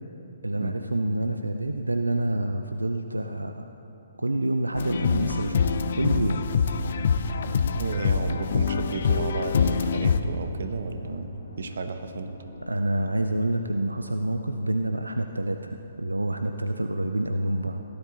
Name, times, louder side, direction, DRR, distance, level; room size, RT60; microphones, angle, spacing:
voice 1, 0.4-3.7 4.2-6.4 12.7-17.8, right 1 dB, 90° right, 6 dB, 0.5 m, -27 dB
sound 1, 4.8-10.2, left 6 dB, 55° left, 0.6 m, -25 dB
sound 2, 7.5-14.4, left 2 dB, 75° left, 2.1 m, -48 dB
voice 2, 7.5-12.3, right 4 dB, 60° right, 8 dB, 0.9 m, -33 dB
17.0 x 11.0 x 4.0 m, 2.8 s
figure-of-eight pair, 130°, 0 cm